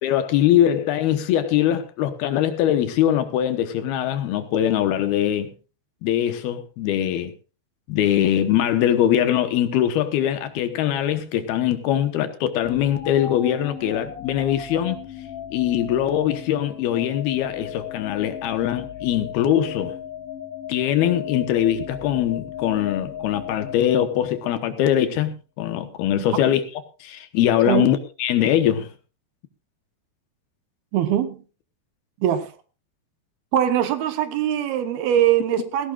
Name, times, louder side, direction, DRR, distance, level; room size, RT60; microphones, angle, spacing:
voice 1, 0.0-5.5 6.0-7.3 7.9-15.0 15.5-20.0 20.7-26.6 27.0-28.9, left 11 dB, 75° left, 2.8 m, -22 dB
sound 1, 12.6-24.7, left 9 dB, 40° left, 2.7 m, -36 dB
voice 2, 30.9-31.4 32.2-32.5 33.5-35.9, right 10 dB, 75° right, 2.7 m, -22 dB
17.5 x 17.0 x 2.4 m
omnidirectional pair, 4.9 m